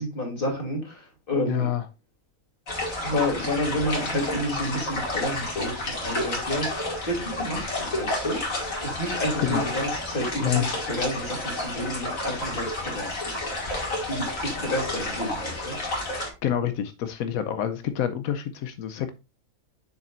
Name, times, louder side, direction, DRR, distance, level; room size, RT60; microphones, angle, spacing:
voice 1, 0.0-1.7 3.0-8.4 8.8-13.5 14.1-15.8, left 1 dB, 40° left, -1 dB, 3.2 m, -30 dB
voice 2, 1.5-1.9 9.4-9.6 10.4-10.7 16.4-19.1, left 10 dB, 90° left, 10 dB, 1.2 m, -27 dB
sound 1, 2.7-16.3, left 1 dB, 70° left, 2.9 m, -30 dB
7.3 x 6.9 x 2.5 m, 0.27 s
omnidirectional pair, 1.4 m